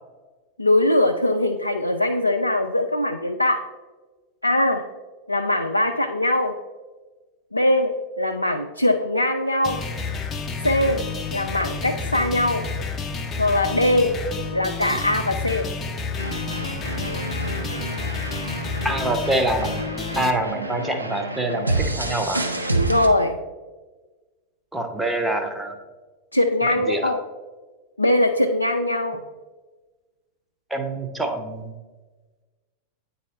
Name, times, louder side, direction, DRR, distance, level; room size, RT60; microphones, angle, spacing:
voice 1, 0.6-3.6 4.4-4.9 5.3-6.5 7.5-9.8 10.6-11.0 11.3-12.7 13.4-14.2 14.5-15.7 22.7-23.4 26.3-27.2 28.0-29.2, left 1 dB, 85° left, 4 dB, 0.3 m, -21 dB
sound 1, 9.6-20.3, left 4 dB, 25° left, 0.6 m, -30 dB
sound 2, 16.2-23.1, right 2 dB, 85° right, 0.6 m, -29 dB
voice 2, 18.8-19.8 20.1-22.4 24.7-25.7 26.9-27.1 30.7-31.7, right 1 dB, 5° right, 4 dB, 0.8 m, -25 dB
9.0 x 4.1 x 3.2 m, 1.3 s
figure-of-eight pair, 90°, 0 cm